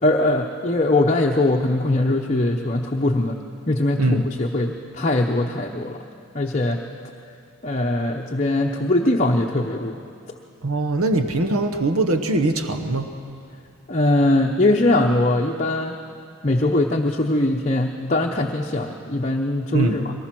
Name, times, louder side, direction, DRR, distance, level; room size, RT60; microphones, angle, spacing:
voice 1, 0.0-3.4 3.7-6.0 6.3-6.8 7.6-10.0 13.9-16.0 16.4-20.1, left 2 dB, 35° left, 0 dB, 0.9 m, -21 dB
voice 2, 10.6-13.1 19.7-20.0, right 2 dB, 80° right, 7 dB, 1.1 m, -21 dB
23.0 x 19.0 x 6.1 m, 2.4 s
head